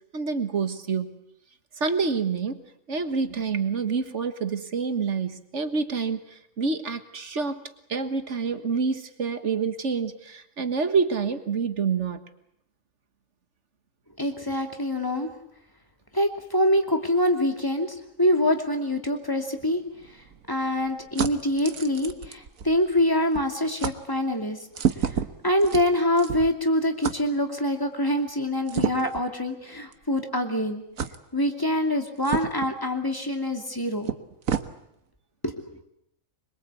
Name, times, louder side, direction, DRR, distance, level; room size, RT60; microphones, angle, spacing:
voice 1, 0.1-1.2 1.8-7.6 7.9-12.2, right 5 dB, 60° right, 9 dB, 1.8 m, -27 dB
voice 2, 14.2-15.3 16.1-19.8 20.5-24.6 25.0-30.8 31.3-34.1 35.4-35.5, left 1 dB, 15° left, 4 dB, 2.7 m, -25 dB
sound 1, 19.6-23.1 23.3-23.5 23.8-24.0 24.7-26.6 27.0-27.2 28.7-29.2 29.9-30.0 31.0-31.2 32.2-32.7 33.7-33.8 34.1-34.7, right 8 dB, 80° right, 1.6 m, -30 dB
25.5 x 22.5 x 8.4 m, 0.77 s
omnidirectional pair, 1.4 m